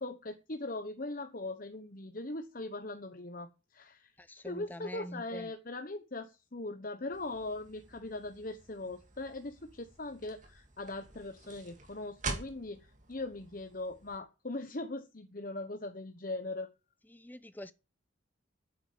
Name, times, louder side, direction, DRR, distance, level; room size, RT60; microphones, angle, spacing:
voice 1, 0.0-16.7, left 2 dB, 45° left, 1.0 m, -40 dB
voice 2, 4.2-5.5 17.1-17.7, left 1 dB, 10° left, 0.6 m, -45 dB
sound 1, 7.1-14.2, right 3 dB, 40° right, 3.0 m, -46 dB
8.6 x 8.5 x 8.5 m
head